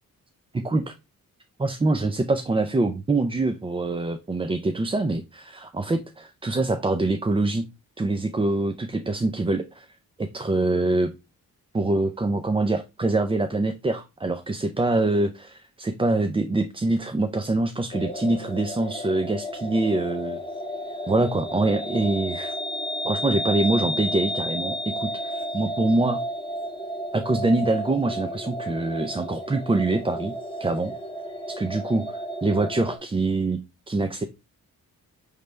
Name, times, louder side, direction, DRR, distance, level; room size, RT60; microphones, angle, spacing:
voice 1, 0.5-0.9 1.6-7.6 8.0-9.9 10.2-11.1 11.7-20.4 21.1-22.6 23.0-26.2 27.1-30.3 30.6-30.9 31.6-34.2, right 2 dB, 15° right, 8 dB, 0.4 m, -24 dB
sound 1, 17.9-33.0, equal, 15° left, 0.9 m, -32 dB
5.2 x 3.2 x 3.2 m, 0.25 s
wide cardioid pair, 100°, 35 cm